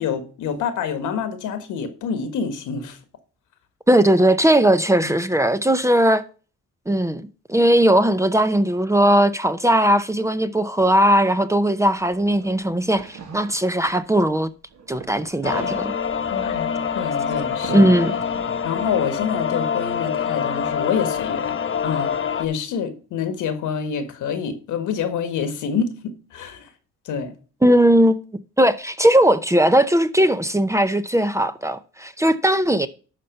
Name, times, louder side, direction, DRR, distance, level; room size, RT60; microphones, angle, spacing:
voice 1, 0.0-3.0 16.3-17.9 18.6-21.5 21.8-26.6 27.0-27.3, left 6 dB, 80° left, 1.7 m, -27 dB
voice 2, 3.9-6.2 6.9-14.5 14.9-15.9 17.7-18.1 27.6-28.2 28.6-32.9, right 1 dB, 10° right, 0.6 m, -18 dB
sound 1, 12.0-14.3 14.7-18.7 19.1-20.1, right 5 dB, 60° right, 1.8 m, -41 dB
sound 2, 15.4-22.4, left 7 dB, 40° left, 1.1 m, -25 dB
11.0 x 4.3 x 6.6 m
cardioid pair, 90°, 30 cm